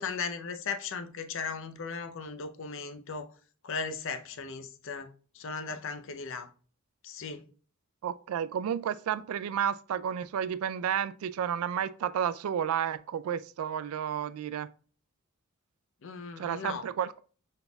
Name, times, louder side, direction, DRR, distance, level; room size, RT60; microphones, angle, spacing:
voice 1, 0.0-3.3 3.6-5.1 5.3-6.5 7.0-7.4 16.0-16.9, left 5 dB, 65° left, 0.6 m, -37 dB
voice 2, 8.0-14.7 16.4-17.2, right 8 dB, 80° right, 0.3 m, -31 dB
5.3 x 4.1 x 2.2 m
head